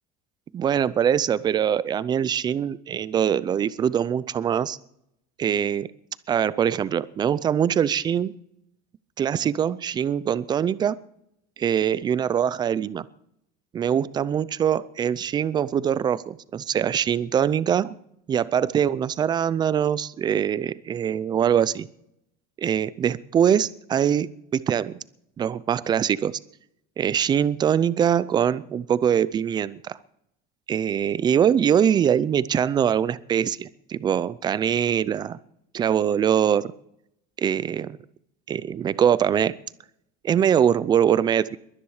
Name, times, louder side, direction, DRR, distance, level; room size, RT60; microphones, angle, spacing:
voice 1, 0.5-4.8 5.4-5.9 6.3-8.3 9.2-11.0 11.6-13.1 13.7-18.0 18.3-21.9 22.6-25.0 25.4-26.3 27.0-30.0 30.7-35.4 35.7-36.7 37.4-38.0 38.5-39.5 40.2-41.6, right 9 dB, 20° right, 18 dB, 0.5 m, -23 dB
22.0 x 10.0 x 4.9 m, 0.76 s
cardioid pair, 160°, 19 cm